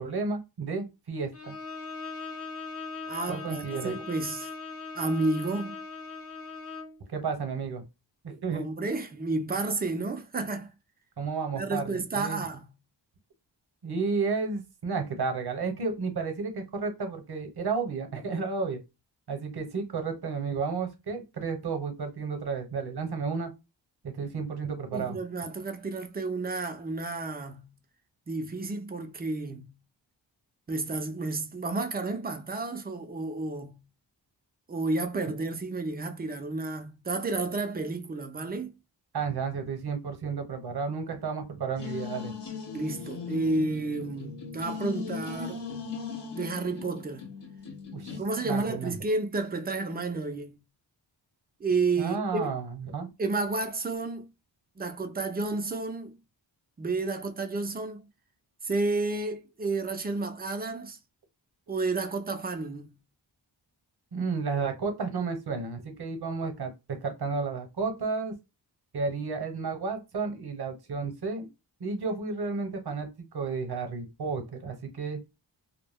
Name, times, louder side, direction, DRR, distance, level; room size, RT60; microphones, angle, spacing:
voice 1, 0.0-1.5 3.3-3.9 7.1-7.8 8.2-8.7 11.2-12.4 13.8-18.8 19.3-23.5 24.0-25.2 39.1-42.3 47.9-48.2 48.4-48.9 52.0-53.1 64.1-68.3 68.9-71.5 71.8-73.1 73.3-75.2, right 4 dB, 60° right, 0.9 m, -32 dB
Bowed string instrument, 1.3-7.0, left 4 dB, 35° left, 0.5 m, -40 dB
voice 2, 3.1-4.5 4.9-5.8 8.5-10.7 11.5-12.7 24.9-27.7 28.3-29.7 30.7-33.8 34.7-38.7 42.7-45.6 46.3-47.3 48.2-50.6 51.6-52.5 53.2-54.3 54.8-56.2 56.8-58.1 58.6-61.0 61.7-62.9, right 3 dB, 20° right, 0.4 m, -31 dB
sound 1, 41.8-48.2, left 5 dB, 65° left, 0.8 m, -38 dB
2.2 x 2.0 x 3.4 m
wide cardioid pair, 85°, 45 cm